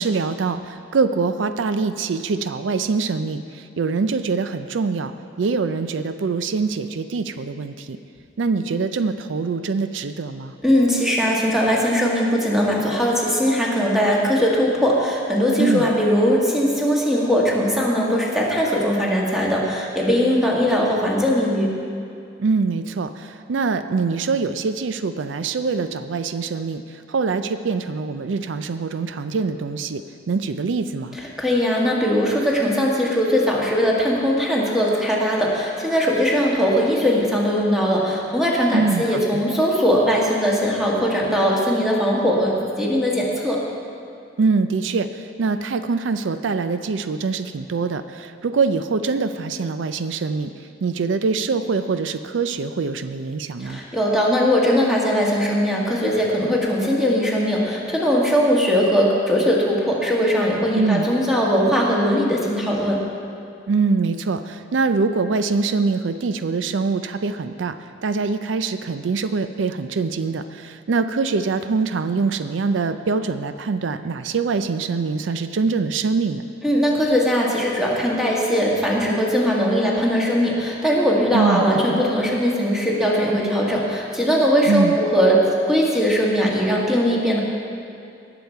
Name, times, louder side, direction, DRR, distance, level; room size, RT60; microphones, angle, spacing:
voice 1, 0.0-5.1 5.4-8.0 8.4-10.5 15.6-15.9 22.4-26.8 27.1-30.0 30.3-31.2 38.7-39.4 44.4-50.5 50.8-53.8 60.7-61.1 63.7-67.8 68.0-76.4 81.3-82.0 84.6-85.0, right 4 dB, 85° right, 10 dB, 0.4 m, -24 dB
voice 2, 10.6-21.7 31.2-43.6 53.6-63.0 76.6-87.4, equal, ahead, -4 dB, 1.7 m, -20 dB
18.5 x 7.0 x 4.6 m, 2.6 s
head